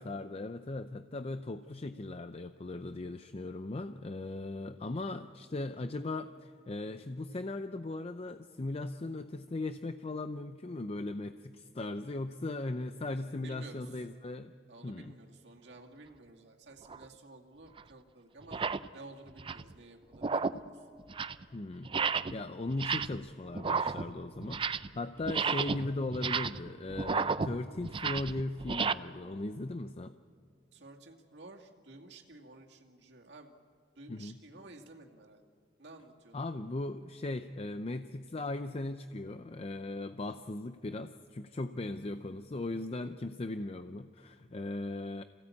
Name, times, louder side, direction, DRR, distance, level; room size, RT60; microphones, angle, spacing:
voice 1, 0.0-14.5 14.8-15.2 21.5-30.1 34.1-34.4 36.3-45.2, left 2 dB, 35° left, 10 dB, 0.5 m, -38 dB
voice 2, 13.3-14.0 14.7-18.6 18.9-20.9 25.7-25.8 30.7-33.5 34.0-35.4 35.8-36.5 42.1-42.2, right 2 dB, 75° right, 0 dB, 2.2 m, -53 dB
sound 1, 16.9-17.1 17.8-17.9 18.4-18.9 19.3-19.7 20.1-20.7 21.0-21.4 21.8-22.4 22.7-23.3 23.5-25.0 25.2-28.9, right 5 dB, 30° right, 0.5 m, -33 dB
26.5 x 16.5 x 8.4 m, 2.3 s
head